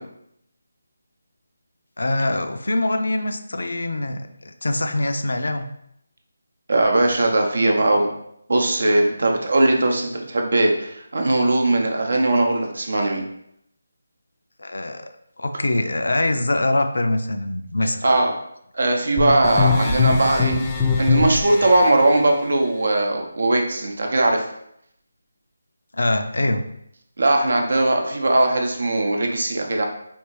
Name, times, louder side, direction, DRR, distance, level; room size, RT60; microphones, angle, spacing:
voice 1, 2.0-5.6 14.6-15.1 15.4-18.0 25.9-26.7, left 1 dB, 75° left, 7 dB, 0.3 m, -23 dB
voice 2, 6.7-8.1 8.5-13.2 18.0-18.3 18.7-20.6 21.0-24.5 27.2-29.9, right 2 dB, 65° right, 2 dB, 0.6 m, -19 dB
sound 1, 19.2-21.9, left 4 dB, 15° left, 0.5 m, -21 dB
3.3 x 2.5 x 3.1 m, 0.75 s
figure-of-eight pair, 160°, 0 cm